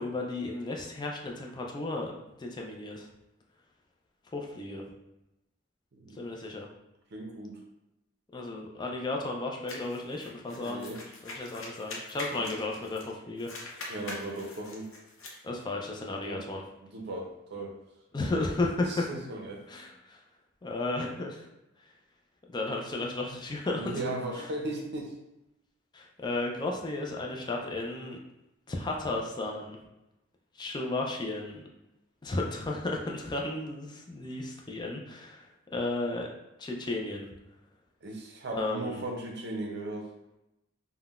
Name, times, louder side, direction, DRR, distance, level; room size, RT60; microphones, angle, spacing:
voice 1, 0.0-2.1 2.4-3.1 4.3-4.8 6.1-6.7 8.3-10.9 11.2-13.9 15.4-16.6 18.1-19.1 19.7-20.2 20.6-21.5 22.5-24.0 24.4-24.5 25.9-28.2 28.7-29.8 30.6-31.6 32.2-36.3 36.6-37.3 38.5-39.0, left 2 dB, 20° left, 0 dB, 0.4 m, -34 dB
voice 2, 7.1-7.6 10.5-11.0 12.3-12.5 13.9-14.9 16.2-16.4 16.8-17.8 18.9-19.6 23.7-25.1 38.0-40.1, right 2 dB, 55° right, 1 dB, 0.6 m, -37 dB
sound 1, 9.7-13.1 13.4-15.4, left 2 dB, 65° left, 0.6 m, -43 dB
3.6 x 2.2 x 2.4 m, 0.92 s
head